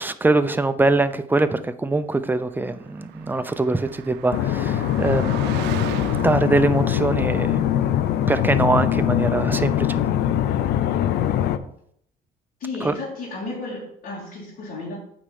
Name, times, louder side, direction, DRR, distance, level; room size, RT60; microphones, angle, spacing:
voice 1, 0.0-5.4 6.2-7.6 8.3-10.0 12.8-12.9, right 2 dB, 10° right, 0.6 m, -22 dB
Car passing by, 2.6-8.5, right 12 dB, 85° right, 0.5 m, -38 dB
sound 1, 4.3-11.6, left 11 dB, 80° left, 0.6 m, -22 dB
voice 2, 12.6-14.9, left 3 dB, 60° left, 2.9 m, -33 dB
8.6 x 4.4 x 5.3 m
cardioid pair, 110°, 17 cm